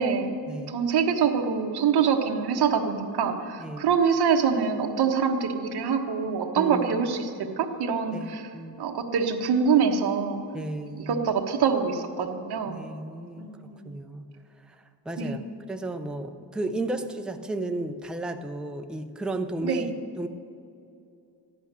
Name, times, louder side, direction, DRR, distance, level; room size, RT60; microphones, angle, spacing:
voice 1, 0.0-0.4 0.7-8.5 8.8-10.4 10.8-12.8 13.4-13.9 15.2-15.4 19.6-19.9, right 6 dB, 65° right, 3 dB, 1.3 m, -25 dB
voice 2, 6.6-7.0 8.1-8.7 10.5-11.2 12.7-13.5 13.8-14.3 15.1-15.4 15.7-19.8 20.2-20.3, right 2 dB, ahead, 5 dB, 0.5 m, -33 dB
14.5 x 10.5 x 6.7 m, 2.6 s
cardioid pair, 160°, 42 cm